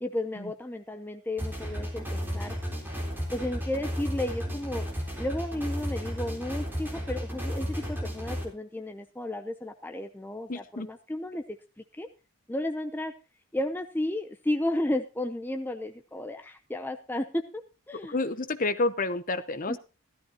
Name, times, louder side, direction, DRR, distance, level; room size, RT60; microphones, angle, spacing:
voice 1, 0.0-2.5 3.3-4.9 5.2-11.6 12.0-12.1 12.5-13.1 13.5-17.4 17.9-18.2 19.7-19.8, left 1 dB, 10° left, 6 dB, 0.6 m, -33 dB
sound 1, 1.4-8.4, equal, 10° right, 3.7 m, -33 dB
voice 2, 10.5-10.9 18.1-19.8, left 2 dB, 40° left, 12 dB, 0.8 m, -29 dB
14.5 x 13.0 x 2.9 m, 0.30 s
head